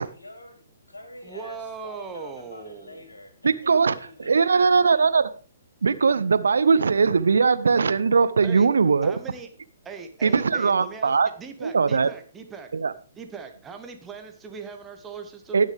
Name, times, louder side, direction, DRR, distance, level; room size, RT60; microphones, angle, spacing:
voice 1, 0.0-5.1, left 1 dB, 75° left, 5 dB, 3.3 m, -46 dB
voice 2, 1.2-3.1 8.4-8.7 9.0-9.5 9.8-12.7 13.1-15.7, right 5 dB, 15° right, 5 dB, 1.3 m, -39 dB
voice 3, 3.4-5.3 5.8-9.1 10.2-11.3 11.6-12.1 12.7-12.9 15.5-15.7, right 5 dB, 65° right, 15 dB, 0.7 m, -20 dB
18.5 x 6.5 x 3.4 m, 0.38 s
figure-of-eight pair, 120°, 0 cm